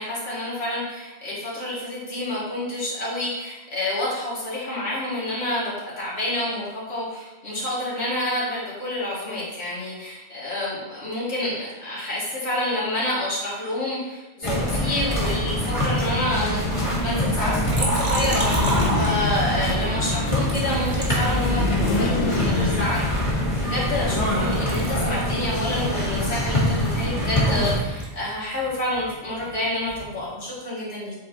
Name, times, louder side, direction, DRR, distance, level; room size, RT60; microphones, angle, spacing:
voice 1, 0.0-23.0 23.6-31.1, left 1 dB, 70° left, -8 dB, 2.2 m, -28 dB
sound 1, 14.4-27.8, equal, 30° left, 1.3 m, -24 dB
Liquid, 17.6-19.6 20.4-22.0 22.5-24.3 24.5-28.2 28.5-30.1, right 1 dB, 50° right, 1.6 m, -31 dB
sound 2, 18.2-19.9 21.2-23.4, left 4 dB, 50° left, 0.5 m, -28 dB
7.8 x 4.4 x 2.7 m, 1.1 s
omnidirectional pair, 1.1 m